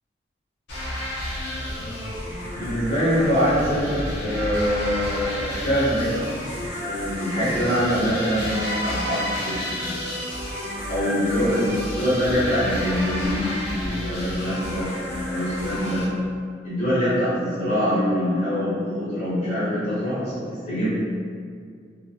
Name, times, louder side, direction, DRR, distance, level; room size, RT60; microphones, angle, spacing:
sound 1, 0.7-16.1, equal, 75° left, 0.8 m, -31 dB
voice 1, 2.5-6.1 6.8-9.9 10.9-14.9 15.3-16.1 16.6-20.9, equal, 40° left, -12 dB, 0.9 m, -24 dB
2.7 x 2.3 x 2.3 m, 2.2 s
head